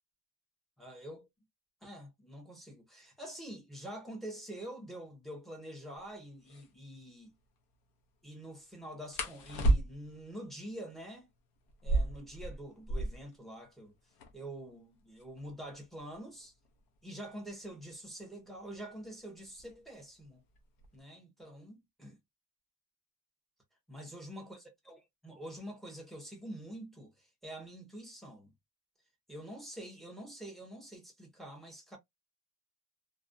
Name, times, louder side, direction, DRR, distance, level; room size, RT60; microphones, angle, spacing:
voice 1, 0.8-1.3 1.8-7.4 8.2-11.3 11.8-14.0 14.3-16.5 17.0-20.4 20.9-22.2 23.9-28.5 29.3-32.0, right 1 dB, ahead, 0.6 m, -46 dB
sound 1, 6.4-6.7 9.1-10.2 11.7-13.3 13.7-13.8 14.0-14.5 15.2-17.7 18.7-19.0 19.4-19.9 20.3-21.0, right 2 dB, 70° left, 0.7 m, -33 dB
2.4 x 2.1 x 2.4 m
cardioid pair, 170°, 37 cm